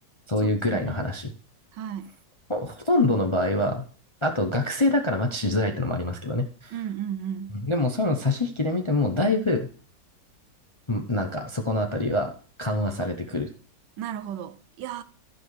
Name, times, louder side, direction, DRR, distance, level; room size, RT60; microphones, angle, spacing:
voice 1, 0.3-1.3 2.5-3.8 4.2-6.7 7.5-9.7 10.9-12.3 12.6-13.5, left 2 dB, 40° left, 0.4 m, -25 dB
voice 2, 1.7-2.2 6.7-7.6 14.0-15.0, right 9 dB, 75° right, 1.2 m, -34 dB
12.0 x 5.1 x 4.7 m
omnidirectional pair, 2.0 m